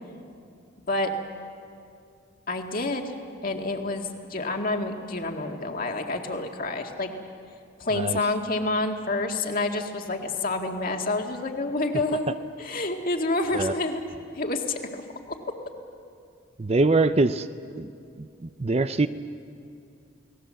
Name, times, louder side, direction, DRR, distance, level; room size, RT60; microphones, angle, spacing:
voice 1, 2.5-3.1 3.4-7.1 7.8-14.1 14.3-15.0, left 2 dB, 45° left, 3 dB, 2.0 m, -28 dB
voice 2, 16.6-17.5 17.7-17.9 18.4-19.1, right 3 dB, 30° right, 11 dB, 0.5 m, -23 dB
30.0 x 18.5 x 7.6 m, 2.4 s
head